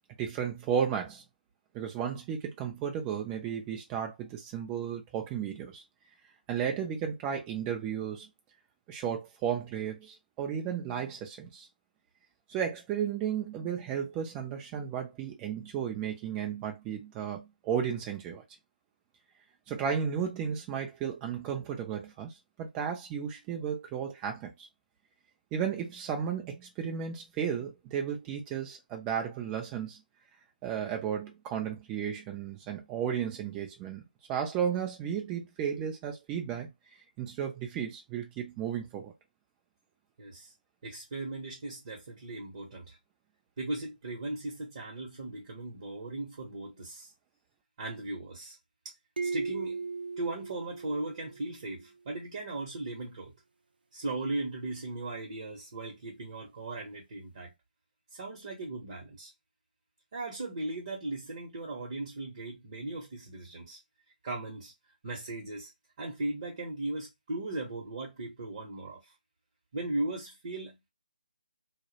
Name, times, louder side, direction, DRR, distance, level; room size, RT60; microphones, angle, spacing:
voice 1, 0.2-1.2 1.7-5.8 6.5-8.3 8.9-11.7 12.5-18.4 19.7-22.3 22.6-24.7 25.5-30.0 30.6-34.0 34.3-36.7 37.2-39.1, right 8 dB, 10° right, 0.3 m, -34 dB
voice 2, 40.2-40.5 40.8-43.0 43.6-47.1 47.8-48.6 49.2-49.8 50.2-53.3 53.9-57.5 58.1-59.3 60.1-63.8 64.2-64.7 65.0-65.7 66.0-69.1 69.7-70.9, right 2 dB, 40° right, 0.7 m, -37 dB
sound 1, 49.2-51.7, right 4 dB, 75° right, 0.5 m, -37 dB
2.2 x 2.0 x 2.7 m
figure-of-eight pair, 160°, 5 cm